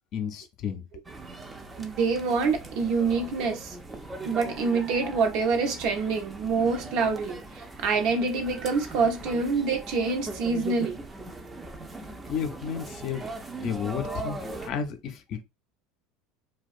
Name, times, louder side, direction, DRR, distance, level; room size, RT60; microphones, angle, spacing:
voice 1, 0.1-0.8 12.3-15.4, left 7 dB, 55° left, 0.5 m, -33 dB
sound 1, 1.0-14.7, right 2 dB, 20° right, 0.4 m, -40 dB
voice 2, 1.8-3.7 4.2-7.4 7.8-11.0, right 4 dB, 65° right, 0.7 m, -26 dB
2.4 x 2.2 x 2.6 m
supercardioid pair, 105°, 0 cm